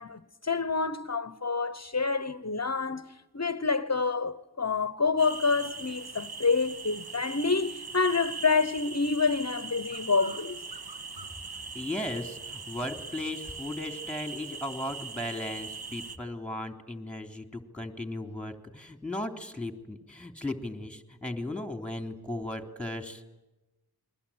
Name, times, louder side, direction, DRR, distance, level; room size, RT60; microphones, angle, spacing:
voice 1, 0.0-10.6, left 4 dB, 45° left, 1.1 m, -28 dB
sound 1, 5.2-16.2, right 4 dB, 80° right, 1.8 m, -41 dB
voice 2, 11.7-23.2, left 1 dB, 5° left, 3.5 m, -36 dB
29.0 x 22.5 x 8.8 m
wide cardioid pair, 75°, 38 cm